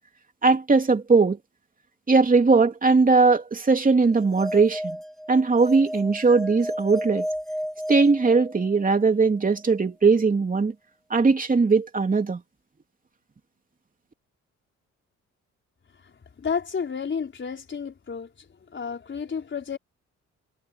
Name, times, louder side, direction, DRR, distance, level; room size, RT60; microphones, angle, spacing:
voice 1, 0.4-1.4 2.1-5.0 5.3-7.3 7.9-10.7 11.1-12.4, right 4 dB, 25° right, 3.1 m, -19 dB
sound 1, 4.1-8.9, equal, ahead, 3.0 m, -33 dB
voice 2, 16.4-18.3 18.7-19.8, left 6 dB, 40° left, 5.0 m, -31 dB
cardioid pair, 90°, 30 cm